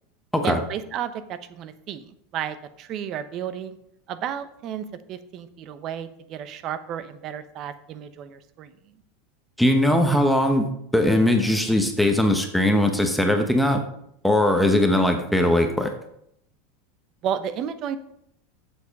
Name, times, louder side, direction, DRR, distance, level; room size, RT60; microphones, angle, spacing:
voice 1, 0.4-3.8 4.1-9.0 17.2-18.0, right 9 dB, 45° right, 13 dB, 0.9 m, -32 dB
voice 2, 9.6-10.7 10.9-13.8 14.2-15.9, left 1 dB, ahead, 4 dB, 1.0 m, -20 dB
7.9 x 7.3 x 5.4 m, 0.75 s
supercardioid pair, 125°, 0 cm